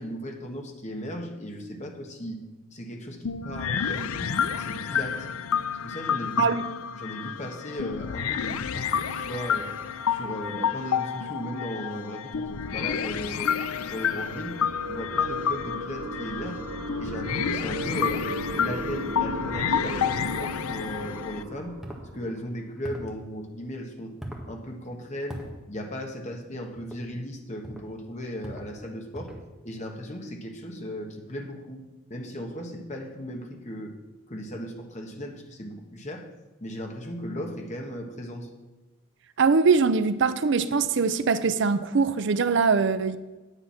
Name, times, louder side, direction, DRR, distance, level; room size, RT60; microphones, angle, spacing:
voice 1, 0.0-2.4 2.7-5.3 5.8-6.5 6.9-9.7 10.1-14.6 14.9-16.7 17.0-18.3 18.5-21.7 22.1-24.1 24.5-25.4 25.7-29.3 29.6-31.8 32.1-33.9 34.3-36.3 36.6-38.5, equal, 35° left, 1.4 m, -36 dB
sound 1, 3.2-21.4, left 7 dB, 85° left, 0.5 m, -30 dB
sound 2, 12.2-22.7, right 1 dB, 85° right, 1.1 m, -37 dB
sound 3, 21.8-22.1 22.8-23.2 24.2-24.5 25.3-25.5 26.8-27.0 27.6-27.9 28.4-28.7 29.1-29.5, right 1 dB, ahead, 1.3 m, -39 dB
voice 2, 39.4-43.2, right 4 dB, 55° right, 0.5 m, -22 dB
10.0 x 8.1 x 5.8 m
head